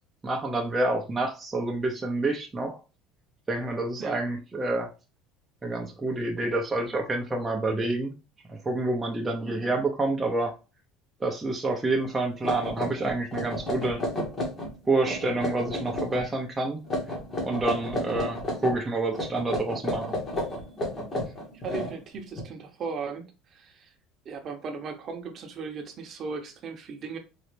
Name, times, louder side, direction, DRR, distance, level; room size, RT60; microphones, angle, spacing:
voice 1, 0.2-2.8 3.5-4.9 5.6-8.1 8.5-10.5 11.2-14.0 14.9-16.8 17.4-20.2, right 2 dB, 15° right, 0.7 m, -28 dB
sound 1, 12.0-12.1 12.4-14.7 15.0-16.2 16.8-18.8 19.1-22.4, left 1 dB, 25° left, 1.7 m, -32 dB
voice 2, 21.5-23.9 24.2-27.2, right 4 dB, 40° right, 0.9 m, -37 dB
4.1 x 3.1 x 3.2 m
cardioid pair, 140°, 0 cm